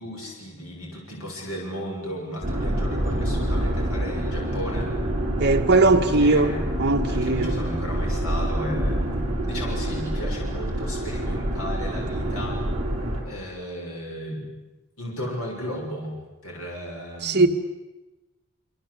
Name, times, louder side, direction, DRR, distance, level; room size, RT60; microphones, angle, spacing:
voice 1, 0.0-4.9 6.0-6.7 7.1-12.6 13.3-14.6 15.0-16.2 16.4-17.4, equal, 70° left, 6.9 m, -35 dB
sound 1, 2.4-13.2, right 1 dB, 30° right, 6.6 m, -27 dB
voice 2, 5.4-7.6 17.2-17.5, right 2 dB, 50° right, 1.9 m, -20 dB
27.0 x 25.0 x 8.3 m
head